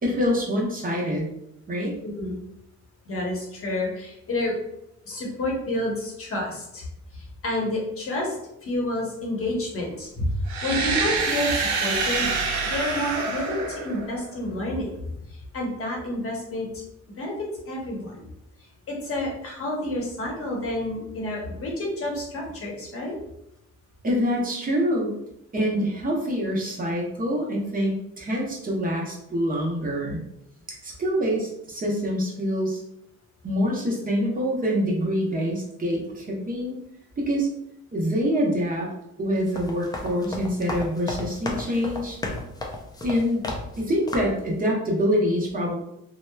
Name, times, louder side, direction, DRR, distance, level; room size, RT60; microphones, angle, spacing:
voice 1, 0.0-1.3 1.7-1.9 24.0-25.2 25.5-30.2 30.8-32.8 33.4-36.8 37.2-37.5 37.9-38.9 39.2-42.2 43.0-43.5 43.8-45.8, equal, 30° right, -3 dB, 0.7 m, -25 dB
voice 2, 2.0-2.4 3.1-4.6 5.1-6.9 7.1-8.4 8.6-12.3 12.6-14.9 15.5-16.8 17.2-18.2 18.9-23.1, left 1 dB, 45° left, -2 dB, 0.9 m, -29 dB
sound 1, 10.5-14.4, right 4 dB, 65° right, 0.6 m, -26 dB
sound 2, 39.4-43.8 44.1-44.4, left 2 dB, 15° left, 0.4 m, -34 dB
2.8 x 2.0 x 2.2 m, 0.80 s
cardioid pair, 90°, 30 cm